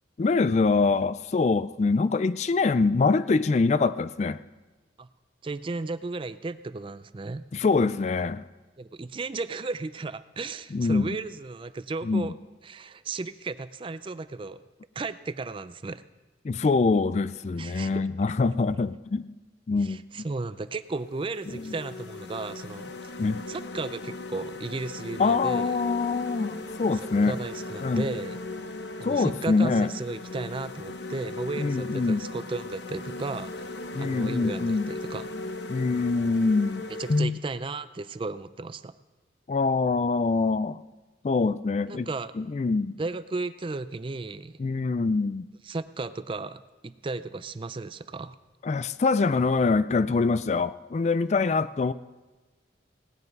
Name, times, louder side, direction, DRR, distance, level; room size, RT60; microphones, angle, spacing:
voice 1, 0.2-4.4 7.5-8.4 10.7-11.1 12.0-12.3 16.4-19.3 19.7-20.3 21.5-21.8 23.2-23.4 25.2-27.4 27.8-28.1 29.0-29.9 31.6-32.3 33.9-34.9 35.7-36.8 37.1-37.4 39.5-40.8 41.2-42.1 42.4-43.0 44.6-45.5 48.6-51.9, left 4 dB, 40° left, 15 dB, 0.3 m, -24 dB
voice 2, 5.4-7.4 8.8-12.3 12.6-14.6 15.0-16.0 17.6-17.9 19.8-23.1 23.5-25.8 26.8-28.4 29.0-35.3 37.0-38.9 41.9-42.3 43.0-44.6 45.6-48.4, right 3 dB, 30° right, 14 dB, 0.4 m, -35 dB
sound 1, 20.3-20.5 21.0-37.2, left 2 dB, 70° left, 0.9 m, -38 dB
18.0 x 10.0 x 5.3 m, 1.2 s
head